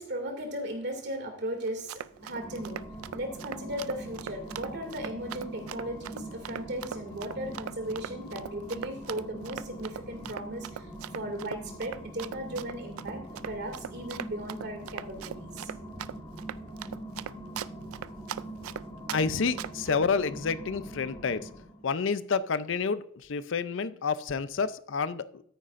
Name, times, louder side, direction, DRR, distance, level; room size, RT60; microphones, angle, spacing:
voice 1, 0.0-10.9 11.1-15.7, right 1 dB, 50° right, 4 dB, 2.4 m, -37 dB
Run, 1.7-19.2 19.6-19.9, right 9 dB, 85° right, 0.4 m, -40 dB
sound 1, 2.1-21.9, right 1 dB, 20° left, 2.0 m, -43 dB
voice 2, 19.1-21.5 21.8-25.4, left 5 dB, 60° left, 14 dB, 0.5 m, -29 dB
13.5 x 9.7 x 2.5 m, 0.65 s
head